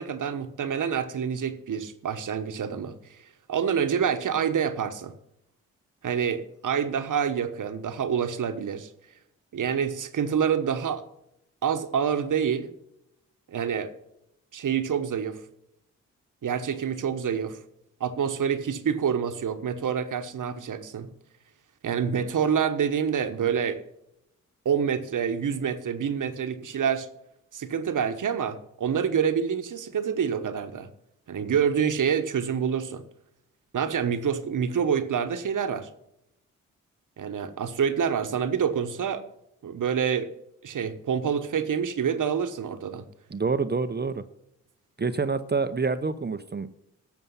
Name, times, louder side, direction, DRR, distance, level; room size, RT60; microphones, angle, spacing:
voice 1, 0.0-3.2 3.5-5.1 6.0-8.9 9.5-11.0 11.6-12.7 13.5-13.9 14.5-15.4 16.4-17.6 18.0-21.1 21.8-23.8 24.6-27.1 27.5-30.9 31.3-33.0 33.7-35.9 37.2-39.2 39.6-40.3 40.6-43.0, right 7 dB, 60° right, 10 dB, 1.2 m, -27 dB
voice 2, 43.3-44.2 45.0-46.7, right 4 dB, 30° right, 11 dB, 0.8 m, -27 dB
12.0 x 7.1 x 5.6 m, 0.81 s
supercardioid pair, 40°, 34 cm